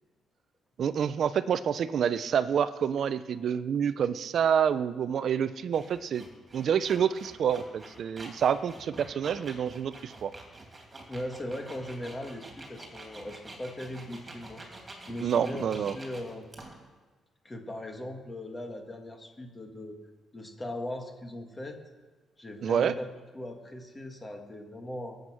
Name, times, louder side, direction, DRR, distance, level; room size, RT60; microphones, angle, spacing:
voice 1, 0.8-6.3 6.5-10.3 15.2-16.0 22.6-22.9, right 8 dB, 55° right, 14 dB, 0.7 m, -28 dB
sound 1, 5.7-16.8, right 2 dB, 20° right, 3.0 m, -47 dB
voice 2, 11.1-14.6 15.0-16.5 17.4-20.0 20.3-21.8 22.4-23.1 23.3-25.2, left 1 dB, 20° left, 3 dB, 1.9 m, -39 dB
21.5 x 8.1 x 6.2 m, 1.3 s
cardioid pair, 135°, 0 cm